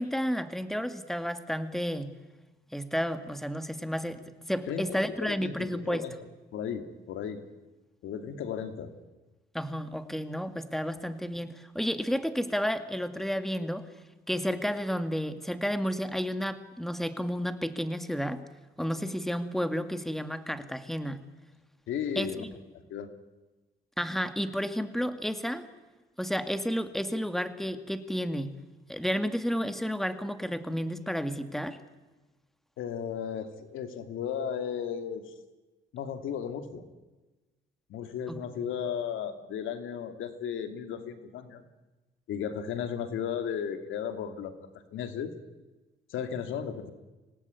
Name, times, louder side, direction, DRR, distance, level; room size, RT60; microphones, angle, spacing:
voice 1, 0.0-2.1 2.7-4.2 4.5-6.0 9.5-13.9 14.3-18.4 18.8-21.2 22.2-22.5 24.0-25.7 26.2-28.5 28.9-31.8 38.3-38.4, equal, ahead, 9 dB, 2.1 m, -31 dB
voice 2, 4.7-6.1 6.5-7.4 8.0-8.9 21.9-22.4 22.9-23.1 32.8-35.3 35.9-36.8 37.9-41.6 42.3-44.5 44.9-45.3 46.1-46.9, left 8 dB, 85° left, 8 dB, 2.6 m, -35 dB
26.0 x 18.5 x 9.6 m, 1.2 s
cardioid pair, 90°, 20 cm